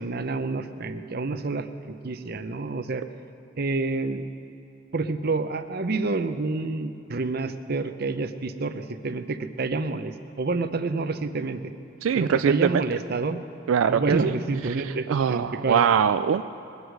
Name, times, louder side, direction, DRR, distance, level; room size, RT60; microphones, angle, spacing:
voice 1, 0.0-3.0 3.6-4.3 4.9-11.7 12.2-13.4 13.9-15.8, right 3 dB, 50° right, 10 dB, 0.6 m, -28 dB
voice 2, 12.0-12.8 13.7-14.3 14.8-16.4, right 7 dB, 80° right, 11 dB, 0.3 m, -22 dB
21.0 x 8.0 x 6.5 m, 2.8 s
head